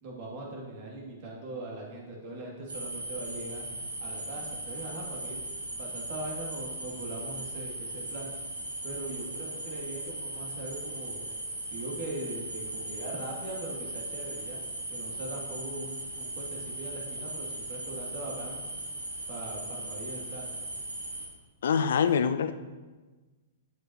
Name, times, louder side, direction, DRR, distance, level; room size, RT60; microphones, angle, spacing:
voice 1, 0.0-3.7 4.0-8.3 8.8-11.2 11.7-14.6 14.9-18.6 19.3-20.5, right 2 dB, 45° right, -2 dB, 2.4 m, -40 dB
sound 1, 2.7-21.3, right 1 dB, 90° right, 1.8 m, -38 dB
voice 2, 21.6-22.5, left 7 dB, 70° left, 11 dB, 0.4 m, -25 dB
8.3 x 8.0 x 3.0 m, 1.2 s
hypercardioid pair, 115°, 0 cm